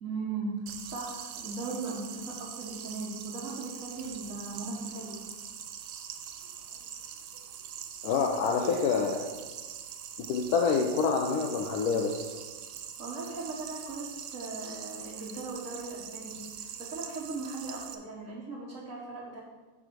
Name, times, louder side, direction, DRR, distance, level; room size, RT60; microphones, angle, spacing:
voice 1, 0.0-5.2 13.0-19.4, right 3 dB, 55° right, -5 dB, 1.5 m, -38 dB
sound 1, 0.7-17.9, right 8 dB, 75° right, 1.1 m, -43 dB
voice 2, 8.0-9.3 10.3-12.3, left 5 dB, 70° left, 2 dB, 1.1 m, -27 dB
8.6 x 3.5 x 6.1 m, 1.3 s
omnidirectional pair, 1.8 m